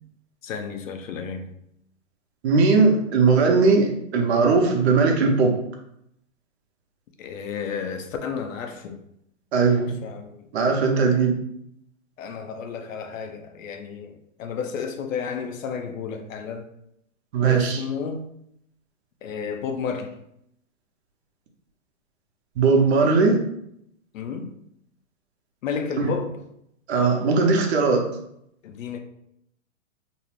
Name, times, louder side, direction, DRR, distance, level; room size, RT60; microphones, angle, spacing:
voice 1, 0.4-1.5 7.2-9.0 9.8-10.4 12.2-16.7 17.4-18.3 19.2-20.1 24.1-24.5 25.6-26.4 28.6-29.0, left 6 dB, 80° left, 6 dB, 0.5 m, -32 dB
voice 2, 2.4-5.5 9.5-10.0 10.5-11.3 17.3-17.8 22.6-23.4 26.0-26.1 26.9-28.0, right 4 dB, 55° right, 2 dB, 0.7 m, -19 dB
2.6 x 2.0 x 3.0 m, 0.76 s
hypercardioid pair, 135°, 39 cm